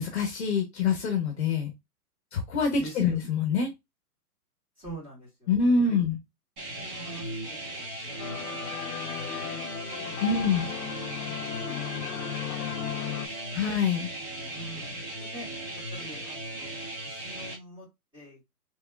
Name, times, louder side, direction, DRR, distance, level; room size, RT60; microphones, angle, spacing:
voice 1, 0.0-1.7 2.3-3.7 5.5-6.2 10.2-10.7 13.5-14.1, left 5 dB, 45° left, 4 dB, 0.8 m, -25 dB
voice 2, 2.8-3.2 4.8-5.5 5.8-6.0 6.8-7.3 7.7-8.8 9.4-10.2 11.3-11.4 11.7-12.1 12.3-12.7 13.2-13.6 14.5-15.5 15.9-17.9 18.1-18.4, right 1 dB, 10° right, -6 dB, 1.9 m, -46 dB
sound 1, 6.6-17.6, right 1 dB, 35° right, 1.4 m, -37 dB
sound 2, 8.2-13.3, left 12 dB, 70° left, 0.5 m, -36 dB
3.3 x 3.1 x 2.2 m, 0.20 s
hypercardioid pair, 160°, 46 cm